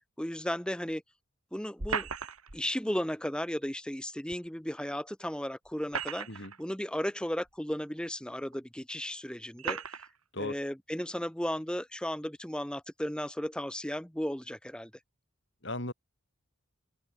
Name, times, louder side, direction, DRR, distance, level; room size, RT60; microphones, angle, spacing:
voice 1, 0.2-1.0 1.5-2.1 2.5-10.0 10.4-14.9, equal, 5° left, 0.9 m, -35 dB
sound 1, 1.8-2.6 4.3-4.4 5.7-6.6 7.5-7.6 8.5-8.6 9.6-10.1, right 5 dB, 90° right, 4.2 m, -36 dB
voice 2, 15.6-15.9, left 1 dB, 55° left, 6.1 m, -36 dB
open air
head